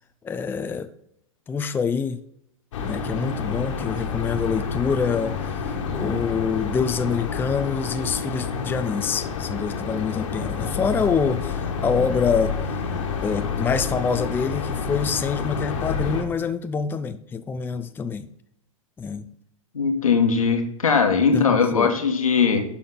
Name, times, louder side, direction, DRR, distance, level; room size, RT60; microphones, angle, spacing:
voice 1, 0.2-0.9 1.5-2.2 2.8-12.9 13.2-18.3 19.0-19.3 21.3-21.9, left 6 dB, 10° left, 10 dB, 0.5 m, -26 dB
sound 1, 2.7-16.2, left 5 dB, 65° left, 1.6 m, -29 dB
voice 2, 19.7-22.6, left 5 dB, 85° left, 4 dB, 1.4 m, -20 dB
11.5 x 4.3 x 3.9 m, 0.74 s
figure-of-eight pair, 100°, 17 cm